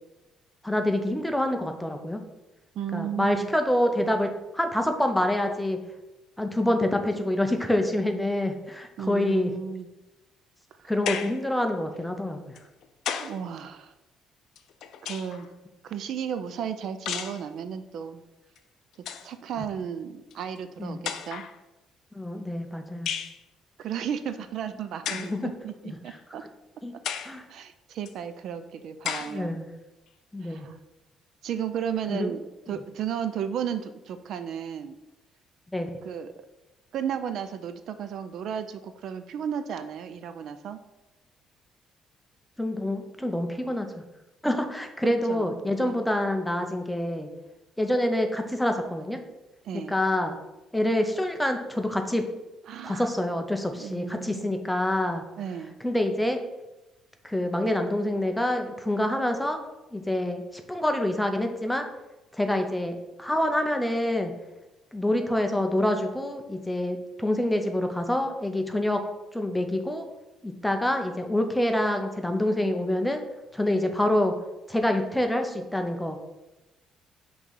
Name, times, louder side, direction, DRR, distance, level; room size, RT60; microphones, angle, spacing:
voice 1, 0.6-2.2 2.9-5.8 6.4-9.5 10.8-12.6 20.8-21.0 22.1-23.1 25.1-25.5 25.8-26.0 26.8-26.9 27.2-27.4 29.3-29.7 30.3-30.7 32.1-32.4 32.7-32.8 35.7-35.9 42.6-44.0 44.4-47.3 47.8-49.2 49.7-50.4 50.7-52.3 52.8-55.2 55.8-56.4 57.2-59.6 59.9-61.9 62.3-64.3 64.9-69.0 69.3-70.1 70.4-73.2 73.5-74.3 74.7-76.2, left 1 dB, 5° left, 5 dB, 0.5 m, -26 dB
voice 2, 2.7-3.5 9.0-9.9 10.8-10.9 13.2-13.9 15.0-15.5 15.8-18.2 19.2-21.0 21.3-21.4 23.8-26.4 27.5-29.6 30.4-30.8 31.4-32.4 32.7-35.0 36.0-36.3 36.9-40.8 45.0-46.0 49.6-50.0 52.7-53.1 53.8-54.5 55.4-55.8, right 8 dB, 55° right, 10 dB, 0.3 m, -34 dB
sound 1, 11.1-11.5 12.6-13.4 14.6-15.5 17.1-17.4 18.6-18.7 18.9-19.3 20.3-20.4 21.0-21.6 23.1-23.4 25.0-25.4 26.1-26.2 27.0-27.4 28.1-28.2 29.0-29.4, left 8 dB, 65° left, 0.4 m, -33 dB
5.8 x 3.1 x 5.3 m, 1.0 s
cardioid pair, 165°, 0 cm